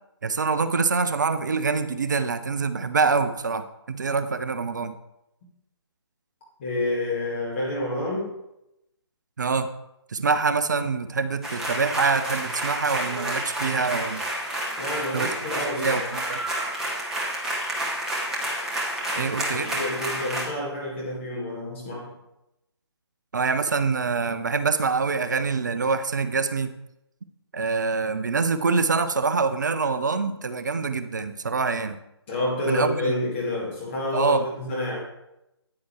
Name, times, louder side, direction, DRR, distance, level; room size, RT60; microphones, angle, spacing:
voice 1, 0.2-5.0 9.4-9.7 10.1-14.2 15.1-15.3 15.8-16.4 19.2-19.7 23.3-26.7 27.5-32.0 32.7-33.1 34.1-34.4, right 4 dB, 40° right, 11 dB, 0.6 m, -25 dB
voice 2, 6.6-8.3 14.8-16.0 19.1-22.2 32.3-35.0, left 1 dB, 25° left, -4 dB, 2.0 m, -29 dB
sound 1, 11.4-20.4, right 1 dB, 5° right, 0.8 m, -30 dB
9.5 x 9.4 x 3.2 m, 0.87 s
figure-of-eight pair, 145°, 14 cm